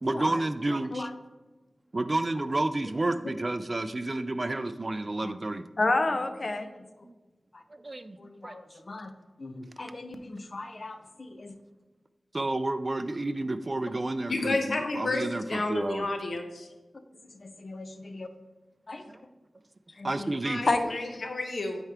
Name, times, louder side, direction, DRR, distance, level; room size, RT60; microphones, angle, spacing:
voice 1, 0.0-1.1 1.9-5.6 7.7-8.2 8.4-8.6 12.3-16.1 19.1-19.2 20.0-20.6, right 2 dB, 35° right, 12 dB, 0.3 m, -30 dB
voice 2, 5.8-6.6 7.5-7.6 8.2-9.1 9.4-11.5 17.4-18.3 18.9-19.0 20.0-20.3 20.6-21.0, left 2 dB, 55° left, 8 dB, 0.6 m, -32 dB
voice 3, 14.3-16.7 20.4-21.8, left 2 dB, 80° left, 4 dB, 0.9 m, -31 dB
9.2 x 4.4 x 3.5 m, 1.2 s
wide cardioid pair, 90°, 0 cm